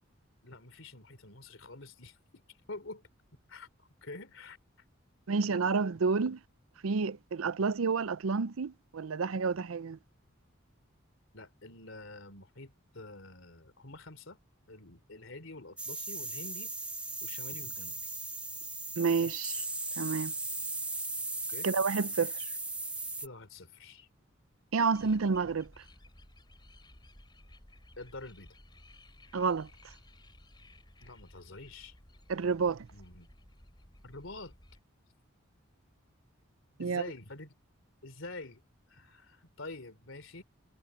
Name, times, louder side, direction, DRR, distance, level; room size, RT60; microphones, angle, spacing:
voice 1, 0.4-2.4 2.7-3.1 3.5-4.6 11.3-14.4 14.7-16.7 17.2-18.0 21.5-21.7 23.2-24.1 28.0-28.6 31.0-32.0 32.9-33.3 34.0-34.5 36.8-37.5 38.0-38.6 38.9-40.4, left 2 dB, 65° left, 3.4 m, -47 dB
voice 2, 5.3-6.4 6.8-10.0 19.0-19.6 20.0-20.3 21.6-22.5 24.7-25.7 29.3-29.7 32.3-32.9 36.8-37.0, right 5 dB, 80° right, 0.6 m, -29 dB
sound 1, 15.8-23.3, right 2 dB, 5° right, 0.5 m, -37 dB
sound 2, 24.9-34.8, left 1 dB, 20° left, 4.3 m, -57 dB
head